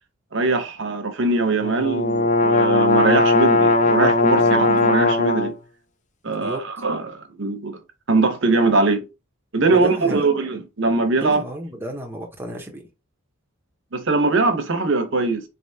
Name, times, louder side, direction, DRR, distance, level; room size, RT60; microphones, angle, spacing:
voice 1, 0.3-5.5 6.2-7.8 8.1-9.1 9.5-11.4 13.9-15.4, right 3 dB, 60° right, 0.9 m, -21 dB
sound 1, 1.6-5.5, left 2 dB, 35° left, 0.5 m, -18 dB
voice 2, 4.2-4.6 6.3-6.6 9.7-10.3 11.2-12.9, right 1 dB, 10° right, 0.8 m, -33 dB
4.0 x 3.4 x 2.7 m
head